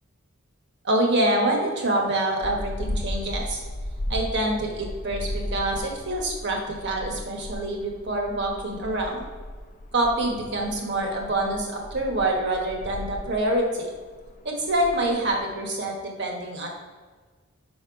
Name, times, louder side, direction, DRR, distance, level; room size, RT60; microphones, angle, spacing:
voice 1, 0.8-3.6 4.1-9.2 9.9-13.9 14.4-16.7, right 1 dB, 55° right, 1 dB, 1.2 m, -26 dB
sound 1, 2.4-15.6, left 1 dB, 40° left, 0.5 m, -36 dB
5.4 x 4.3 x 4.9 m, 1.5 s
head